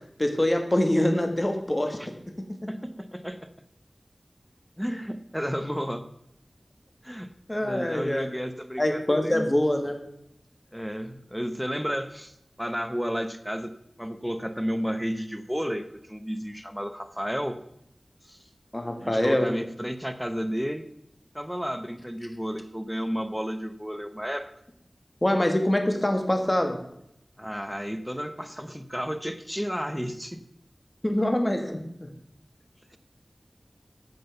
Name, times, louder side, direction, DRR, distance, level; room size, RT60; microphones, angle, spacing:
voice 1, 0.2-2.1 7.5-8.3 8.8-10.0 18.7-19.5 25.2-26.8 31.0-32.1, left 1 dB, 25° left, 4 dB, 1.6 m, -24 dB
voice 2, 2.7-3.5 4.8-6.0 7.0-7.3 7.6-9.5 10.7-13.7 14.0-17.6 18.2-18.4 19.0-20.8 21.3-24.5 27.4-30.4, equal, ahead, 9 dB, 0.9 m, -32 dB
9.5 x 7.5 x 6.9 m, 0.76 s
wide cardioid pair, 55°, 0 cm